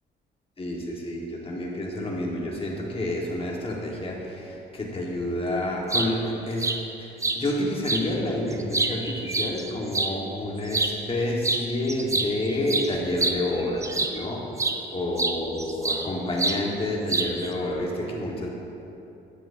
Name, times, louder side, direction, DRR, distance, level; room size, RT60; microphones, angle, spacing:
voice 1, 0.6-6.7 7.0-14.5 14.9-18.5, left 1 dB, 30° left, -2 dB, 1.4 m, -29 dB
sound 1, 5.7-6.1 6.6-6.8 7.2-7.4 7.8-8.0 8.5-10.1 10.7-10.9 11.4-11.6 11.9-14.2 14.6-14.8 15.2-16.1 16.4-16.6 17.1-17.5, right 3 dB, 15° right, 0.4 m, -26 dB
9.6 x 7.3 x 2.6 m, 2.9 s
cardioid pair, 90°, 20 cm